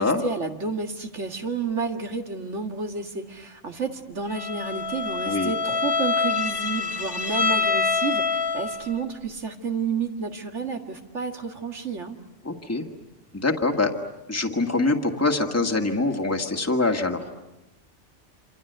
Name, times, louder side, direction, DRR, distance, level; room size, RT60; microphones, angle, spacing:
voice 1, 0.0-12.2, right 5 dB, 85° right, 4 dB, 2.3 m, -31 dB
Bowed string instrument, 4.3-9.0, left 4 dB, 50° left, 1.6 m, -26 dB
voice 2, 12.4-12.8 13.3-13.9 14.3-17.2, left 3 dB, 15° left, 2 dB, 1.8 m, -24 dB
28.0 x 26.5 x 8.1 m, 0.94 s
omnidirectional pair, 1.2 m